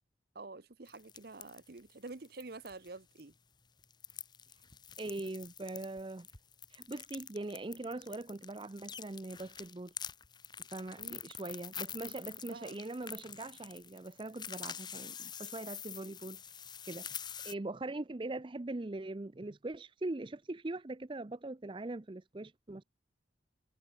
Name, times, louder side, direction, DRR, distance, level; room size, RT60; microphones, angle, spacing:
voice 1, 0.3-3.3 11.0-11.2 12.4-12.8, right 3 dB, 50° right, 0.9 m, -48 dB
sound 1, 0.9-2.9 3.2-3.3 3.8-17.5, left 8 dB, 20° left, 1.2 m, -46 dB
voice 2, 5.0-6.3 6.7-9.9 10.7-16.4 16.9-22.8, right 2 dB, 25° right, 0.5 m, -41 dB
head